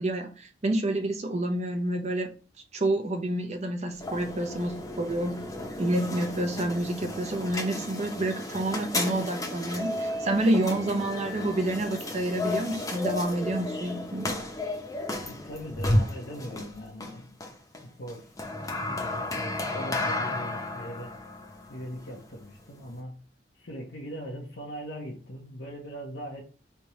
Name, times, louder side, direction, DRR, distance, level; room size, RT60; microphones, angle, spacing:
voice 1, 0.0-2.3 2.7-5.4 5.8-14.3, right 1 dB, 40° right, 5 dB, 0.8 m, -28 dB
sound 1, 3.9-23.0, left 1 dB, 20° left, 0.8 m, -33 dB
voice 2, 15.2-17.3 17.8-18.3 18.8-21.1 21.7-23.3 23.5-26.4, equal, 75° left, -3 dB, 0.9 m, -40 dB
3.4 x 2.9 x 4.2 m, 0.36 s
head